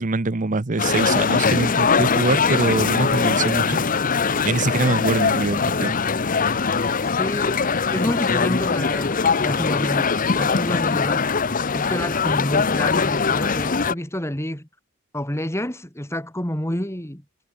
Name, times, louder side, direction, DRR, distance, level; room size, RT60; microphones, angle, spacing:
voice 1, 0.0-3.8 4.4-5.9, right 3 dB, 35° right, 0.8 m, -23 dB
sound 1, 0.8-13.9, left 5 dB, 35° left, 0.8 m, -21 dB
sound 2, 3.7-8.7, left 1 dB, 60° left, 5.6 m, -42 dB
voice 2, 7.0-11.3 11.7-14.7 15.1-17.2, left 1 dB, 10° left, 2.5 m, -29 dB
head